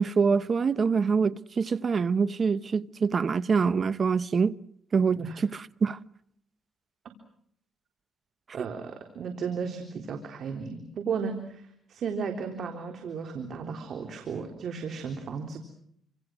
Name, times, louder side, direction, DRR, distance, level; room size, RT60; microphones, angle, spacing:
voice 1, 0.0-4.5 4.9-6.0, right 5 dB, 40° right, 1.0 m, -25 dB
voice 2, 8.5-15.6, right 5 dB, 60° right, 3.6 m, -34 dB
28.0 x 26.5 x 6.2 m
cardioid pair, 90°, 0 cm